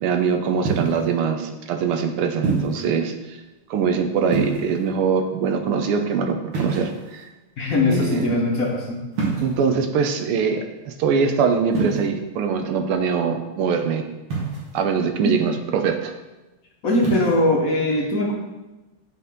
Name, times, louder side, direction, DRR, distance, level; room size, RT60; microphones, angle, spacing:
voice 1, 0.0-3.4 3.7-7.2 7.9-8.3 9.4-14.1 14.7-16.1, right 6 dB, 90° right, 6 dB, 1.7 m, -23 dB
sound 1, 0.7-1.1 2.4-2.9 4.3-4.9 6.5-7.3 9.1-9.7 11.7-12.0 14.3-14.8 17.0-17.4, right 4 dB, 70° right, 2.5 m, -26 dB
voice 2, 7.6-9.0 15.2-15.4 16.8-18.3, left 2 dB, 50° left, -2 dB, 1.2 m, -21 dB
10.5 x 4.3 x 3.7 m, 1.1 s
omnidirectional pair, 2.4 m